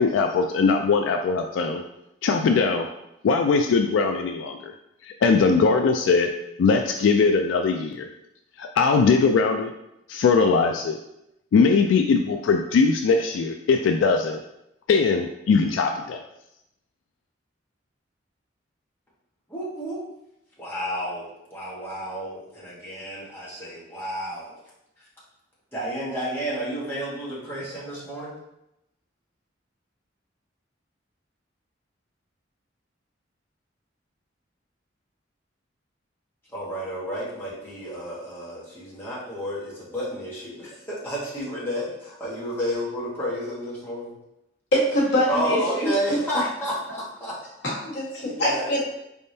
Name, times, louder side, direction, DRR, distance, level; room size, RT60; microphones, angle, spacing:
voice 1, 0.0-1.8 2.2-2.9 3.2-4.7 5.0-6.3 6.6-8.1 8.6-9.7 10.1-11.0 11.5-14.4 14.9-16.2, left 4 dB, 90° left, 5 dB, 0.3 m, -20 dB
voice 2, 19.5-20.0 20.6-24.6 25.0-25.1 25.7-28.3 36.5-44.2 45.3-47.3 48.2-48.7, equal, 10° left, -8 dB, 1.2 m, -31 dB
voice 3, 44.7-46.4 47.6-48.8, equal, 65° left, -6 dB, 1.4 m, -24 dB
4.3 x 3.5 x 2.7 m, 0.84 s
head